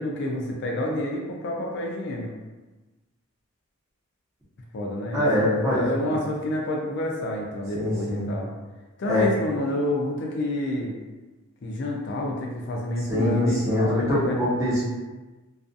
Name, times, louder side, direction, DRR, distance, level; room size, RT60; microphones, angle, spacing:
voice 1, 0.0-2.3 4.7-8.5 9.0-10.9 11.6-14.5, left 1 dB, 50° left, -1 dB, 0.4 m, -29 dB
voice 2, 5.1-6.2 7.7-8.3 9.1-9.3 13.1-14.8, left 1 dB, 15° right, -8 dB, 0.7 m, -23 dB
2.4 x 2.3 x 2.6 m, 1.2 s
head